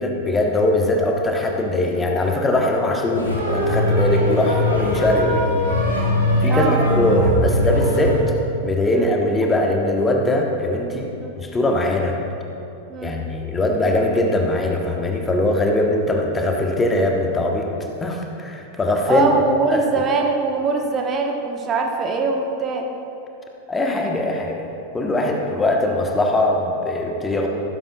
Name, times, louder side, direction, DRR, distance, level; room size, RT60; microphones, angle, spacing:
voice 1, 0.0-5.6 6.4-8.2 8.6-12.2 13.0-17.7 18.0-19.3 19.7-20.0 23.7-27.5, left 1 dB, 15° left, 1 dB, 1.2 m, -21 dB
sound 1, 3.1-8.2, left 1 dB, 80° left, 2.6 m, -20 dB
voice 2, 6.5-6.8 8.9-9.1 11.2-11.3 12.9-13.2 19.1-22.9, right 4 dB, 25° right, 2 dB, 1.1 m, -22 dB
14.5 x 13.0 x 2.4 m, 2.8 s
figure-of-eight pair, 90°, 0 cm